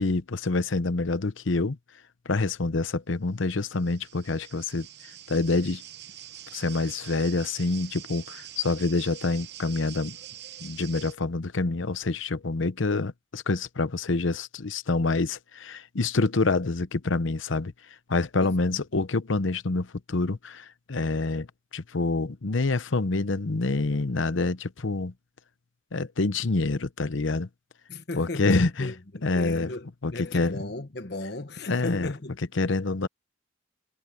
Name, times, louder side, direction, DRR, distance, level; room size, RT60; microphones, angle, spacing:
voice 1, 0.0-1.8 2.2-4.9 5.3-5.8 6.5-10.2 10.6-21.5 21.7-25.1 25.9-27.5 28.1-28.9 29.2-29.7 30.0-30.7 31.6-33.1, left 3 dB, 80° left, 0.9 m, -27 dB
sound 1, 3.5-11.1, right 11 dB, 55° right, 1.0 m, -45 dB
voice 2, 18.4-18.8 27.9-32.4, left 2 dB, 55° left, 1.3 m, -36 dB
head